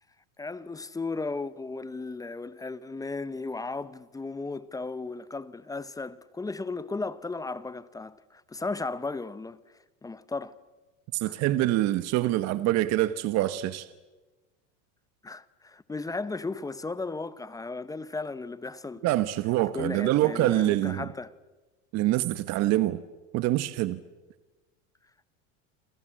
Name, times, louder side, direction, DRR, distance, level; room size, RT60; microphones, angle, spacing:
voice 1, 0.4-9.6 10.0-10.5 11.2-11.4 15.2-19.0 19.7-21.3, left 3 dB, 10° left, 0.8 m, -35 dB
voice 2, 11.1-13.9 19.0-21.0 21.9-23.0 23.3-24.0, right 15 dB, 45° right, 1.2 m, -25 dB
28.5 x 27.5 x 7.6 m
supercardioid pair, 130°, 37 cm